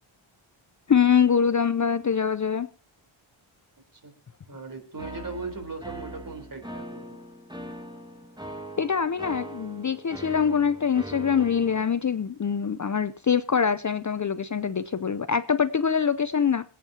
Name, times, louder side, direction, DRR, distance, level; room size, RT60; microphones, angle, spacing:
voice 1, 0.9-2.7 8.8-16.6, left 7 dB, 35° left, 0.6 m, -24 dB
voice 2, 4.5-7.2, right 3 dB, 40° right, 4.1 m, -38 dB
sound 1, 5.0-11.8, right 1 dB, 10° right, 1.8 m, -41 dB
26.5 x 9.1 x 2.9 m
wide cardioid pair, 165°, 50 cm